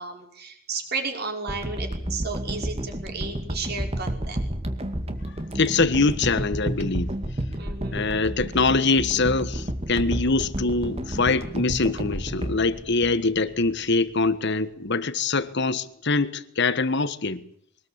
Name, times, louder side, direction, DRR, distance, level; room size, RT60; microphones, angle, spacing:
voice 1, 0.0-4.4 7.6-8.2, right 4 dB, 50° right, 5.7 m, -33 dB
sound 1, 1.5-13.7 14.2-14.3, right 1 dB, 30° right, 2.3 m, -31 dB
voice 2, 5.5-7.1 7.9-17.4, left 3 dB, 55° left, 1.5 m, -23 dB
23.5 x 19.5 x 8.9 m
head